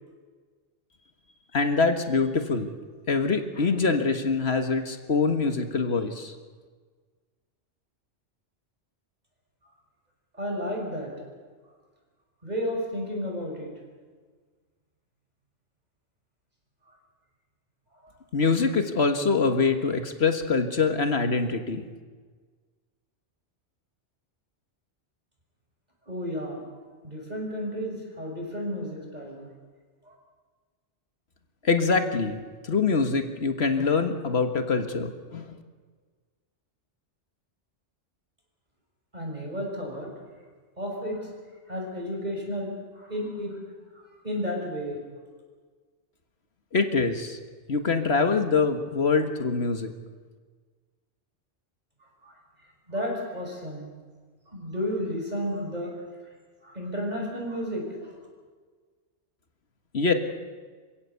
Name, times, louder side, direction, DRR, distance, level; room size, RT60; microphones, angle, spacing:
voice 1, 1.5-2.7 3.1-6.4 18.3-21.8 31.6-35.6 46.7-47.4 47.7-49.9 59.9-60.1, left 4 dB, 65° left, 7 dB, 1.8 m, -24 dB
voice 2, 10.4-11.1 12.4-13.7 18.0-18.1 26.1-26.6 27.0-29.5 30.0-30.1 39.1-40.1 40.8-41.3 41.7-43.6 43.9-45.0 52.2-52.3 52.9-53.9 54.5-55.9 56.6-58.1, equal, 35° right, 0 dB, 6.4 m, -32 dB
27.5 x 16.0 x 8.3 m, 1.5 s
omnidirectional pair, 1.2 m